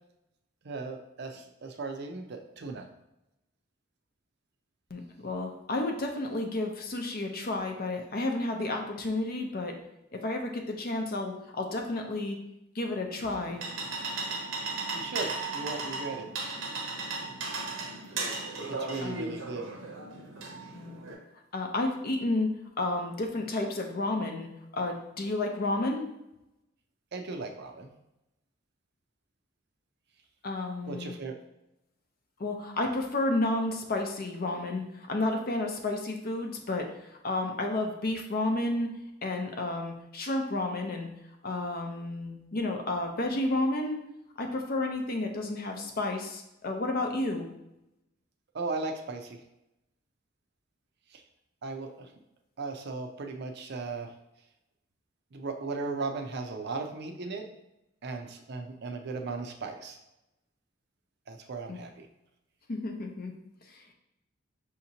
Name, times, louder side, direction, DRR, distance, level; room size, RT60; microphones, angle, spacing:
voice 1, 0.6-2.9 14.9-16.3 18.7-19.7 27.1-27.9 30.8-31.4 48.5-49.4 51.1-51.2 51.6-52.1 52.6-54.1 55.3-57.5 58.0-60.0 61.3-62.1, right 3 dB, 55° right, 4 dB, 0.5 m, -37 dB
voice 2, 4.9-9.8 10.1-12.4 12.7-13.6 19.0-19.5 20.7-21.0 21.5-26.1 30.4-31.1 32.4-41.1 41.4-44.0 44.4-47.5 61.7-61.8 62.7-63.3 63.7-63.9, left 2 dB, 50° left, 3 dB, 0.6 m, -31 dB
sound 1, 13.2-21.1, right 3 dB, 80° right, 0.8 m, -36 dB
5.8 x 2.8 x 2.7 m, 0.89 s
head